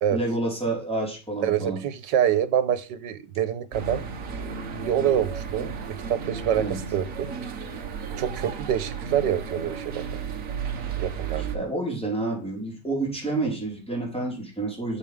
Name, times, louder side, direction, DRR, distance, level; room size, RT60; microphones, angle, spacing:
voice 1, 0.1-1.8 6.5-6.8 11.4-15.0, right 2 dB, 5° left, 4.7 m, -29 dB
voice 2, 1.4-4.0 4.4-7.3 8.2-10.2 11.0-11.5, right 9 dB, 85° right, 1.6 m, -26 dB
sound 1, 3.7-11.6, right 6 dB, 50° right, 1.5 m, -33 dB
9.6 x 7.6 x 3.6 m
omnidirectional pair, 1.9 m